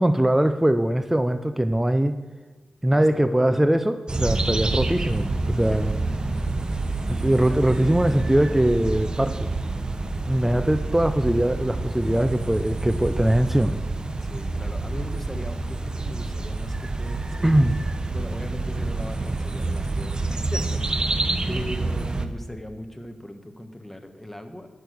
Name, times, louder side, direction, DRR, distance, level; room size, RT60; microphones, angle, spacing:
voice 1, 0.0-2.2 2.8-5.9 7.1-9.5 10.2-13.8 17.4-17.7, right 1 dB, 10° right, 10 dB, 0.6 m, -21 dB
voice 2, 2.8-3.7 5.7-6.0 7.0-7.7 14.2-17.5 18.1-21.1 21.5-24.7, left 1 dB, 10° left, 6 dB, 1.4 m, -39 dB
sound 1, 4.1-22.3, right 2 dB, 35° right, 1.0 m, -28 dB
10.5 x 6.4 x 7.9 m, 1.3 s
cardioid pair, 50°, 2 cm